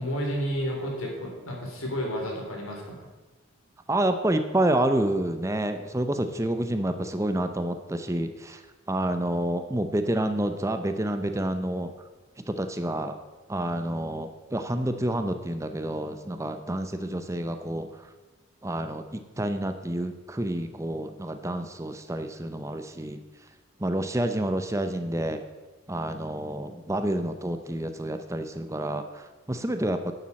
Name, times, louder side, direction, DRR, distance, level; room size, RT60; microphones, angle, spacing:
voice 1, 0.0-3.1, equal, 90° left, 0 dB, 3.6 m, -31 dB
voice 2, 3.9-8.6 8.9-11.9 12.5-13.2 13.5-18.1 18.6-23.2 23.8-25.4 25.9-30.1, right 1 dB, 15° right, 8 dB, 0.6 m, -28 dB
10.5 x 7.2 x 7.5 m, 1.2 s
head